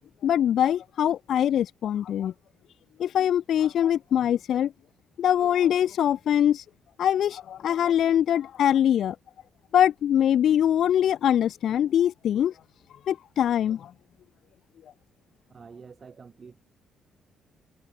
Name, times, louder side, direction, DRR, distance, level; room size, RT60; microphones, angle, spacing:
voice 1, 0.2-2.3 3.0-4.7 5.2-6.6 7.0-9.2 9.7-12.5 13.1-13.9, left 10 dB, 70° left, 0.4 m, -23 dB
voice 2, 15.5-16.6, right 5 dB, 40° right, 6.6 m, -47 dB
cardioid pair, 90°, 0 cm